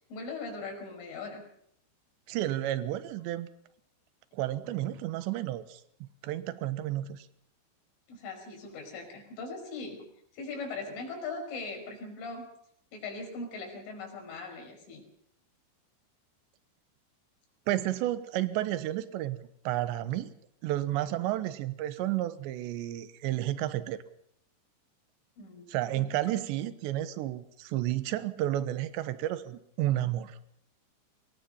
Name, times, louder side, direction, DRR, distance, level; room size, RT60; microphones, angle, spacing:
voice 1, 0.0-1.4 8.1-10.1 10.3-12.5 12.9-15.0 25.4-26.0, left 3 dB, 80° left, 2 dB, 7.8 m, -40 dB
voice 2, 2.3-3.5 4.3-7.3 17.7-20.3 20.6-24.0 25.7-30.4, right 14 dB, 75° right, 13 dB, 3.2 m, -31 dB
24.5 x 20.5 x 5.7 m, 0.70 s
omnidirectional pair, 5.5 m